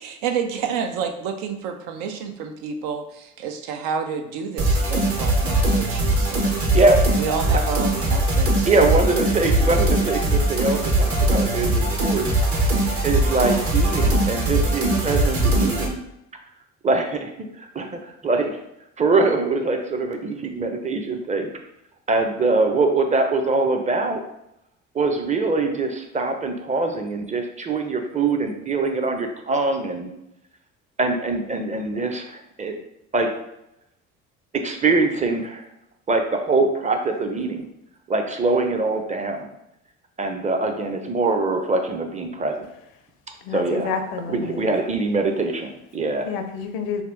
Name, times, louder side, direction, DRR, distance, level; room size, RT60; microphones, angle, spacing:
voice 1, 0.0-6.5 7.2-8.7 9.6-9.8, right 6 dB, 80° right, 6 dB, 0.5 m, -29 dB
sound 1, 4.6-15.9, right 1 dB, 45° right, 1.0 m, -21 dB
voice 2, 8.7-12.3 13.0-16.0 16.8-18.6 19.0-21.5 22.1-24.2 24.9-30.1 31.0-32.7 33.1-33.3 34.5-35.7 36.1-37.7 38.1-39.5 40.2-42.5 43.5-43.9 44.3-46.3, right 3 dB, 25° right, 4 dB, 0.6 m, -23 dB
voice 3, 43.4-44.7 46.3-47.0, left 5 dB, 85° left, 6 dB, 0.5 m, -29 dB
2.8 x 2.2 x 3.4 m, 0.84 s
hypercardioid pair, 70°, 32 cm